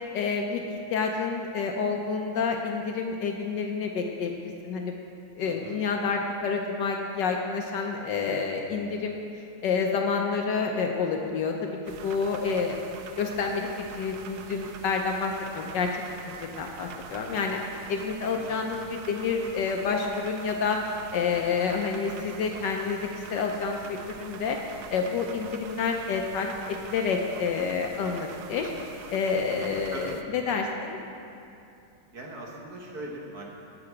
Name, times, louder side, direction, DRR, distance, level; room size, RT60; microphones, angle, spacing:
voice 1, 0.1-4.9 5.4-9.2 9.6-11.7 12.0-12.8 13.2-15.9 16.2-17.6 17.9-20.8 21.1-24.6 24.9-31.0, left 5 dB, 70° left, 2 dB, 1.2 m, -29 dB
voice 2, 5.4-5.8 18.3-18.7 29.9-30.1 32.1-33.4, right 1 dB, 55° right, -1 dB, 1.4 m, -40 dB
sound 1, 11.9-30.2, right 7 dB, 90° right, 0.8 m, -45 dB
7.9 x 6.8 x 8.4 m, 2.6 s
omnidirectional pair, 2.3 m